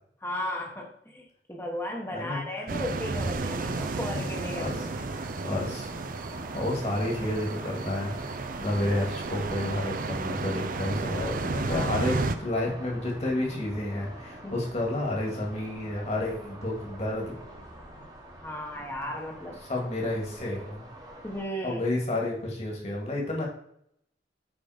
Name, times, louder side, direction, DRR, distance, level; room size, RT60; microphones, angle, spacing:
voice 1, 0.2-4.9 6.5-6.7 11.7-12.2 14.4-14.6 18.4-19.6 21.2-21.9, left 1 dB, 15° left, 0 dB, 1.1 m, -35 dB
voice 2, 2.1-2.4 4.1-4.3 4.6-4.7 5.1-5.9 6.5-17.4 19.7-20.8 21.6-23.5, left 1 dB, 40° left, -2 dB, 2.1 m, -30 dB
sound 1, 2.7-12.4, right 3 dB, 50° right, 0.5 m, -33 dB
sound 2, 3.4-21.4, right 1 dB, 25° right, 1.3 m, -45 dB
sound 3, 8.9-18.0, right 1 dB, 70° right, 2.1 m, -51 dB
8.5 x 3.8 x 5.0 m, 0.71 s
head